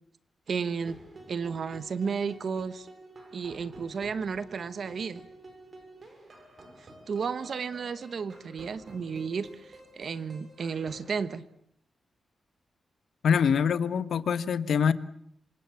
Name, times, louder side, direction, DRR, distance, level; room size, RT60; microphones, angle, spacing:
voice 1, 0.5-1.0 1.3-2.9 3.3-5.2 6.8-11.4, right 5 dB, 50° right, 1.1 m, -33 dB
sound 1, 0.8-11.2, right 2 dB, 35° right, 6.0 m, -50 dB
voice 2, 13.2-14.9, left 7 dB, 65° left, 1.2 m, -24 dB
27.5 x 26.0 x 7.1 m
wide cardioid pair, 175°, 0 cm